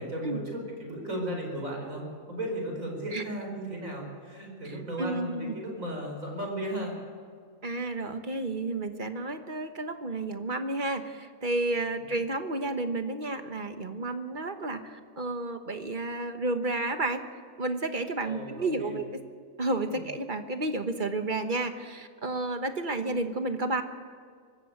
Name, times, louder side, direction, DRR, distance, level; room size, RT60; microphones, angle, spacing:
voice 1, 0.0-7.0 12.0-12.1 18.2-19.0 19.9-20.0, right 1 dB, 70° right, 1 dB, 5.2 m, -35 dB
voice 2, 5.0-5.5 7.6-17.2 17.6-19.0 19.6-23.8, right 2 dB, 35° right, 7 dB, 1.4 m, -31 dB
24.0 x 14.0 x 7.9 m, 2.1 s
omnidirectional pair, 1.5 m